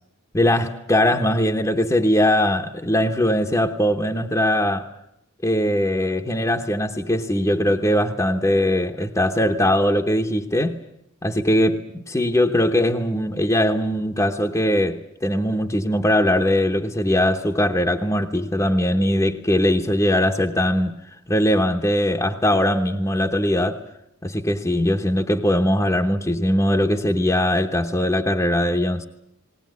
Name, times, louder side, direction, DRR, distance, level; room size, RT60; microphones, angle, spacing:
voice 1, 0.3-4.9 5.4-10.8 11.2-20.9 21.3-23.8 24.2-29.1, left 1 dB, 15° left, 1.0 m, -20 dB
19.5 x 19.5 x 9.4 m
head